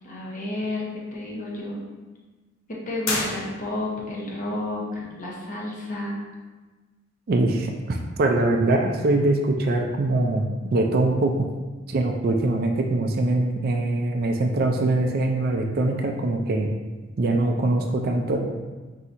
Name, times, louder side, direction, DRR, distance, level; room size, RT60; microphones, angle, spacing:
voice 1, 0.0-1.8 2.7-6.2, left 2 dB, 40° left, -4 dB, 0.9 m, -31 dB
sound 1, 3.0-4.0, left 2 dB, 75° left, 0.7 m, -29 dB
voice 2, 7.3-10.4 10.7-11.3 11.9-16.7 17.2-18.4, right 2 dB, 45° right, 2 dB, 0.4 m, -23 dB
5.6 x 2.8 x 2.5 m, 1.3 s
head